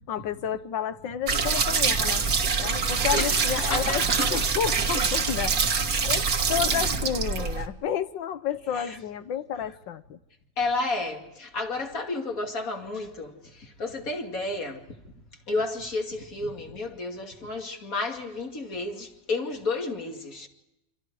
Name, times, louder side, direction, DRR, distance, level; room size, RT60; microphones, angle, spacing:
voice 1, 0.1-2.3 2.6-4.0 4.3-5.8 6.0-10.2, left 9 dB, 70° left, 1.7 m, -31 dB
sound 1, 1.3-7.7, right 5 dB, 50° right, 2.0 m, -25 dB
voice 2, 3.1-4.3 6.0-6.1 8.7-9.0 10.6-14.8 15.5-20.5, left 2 dB, 45° left, 3.0 m, -32 dB
28.5 x 27.0 x 4.9 m
omnidirectional pair, 2.1 m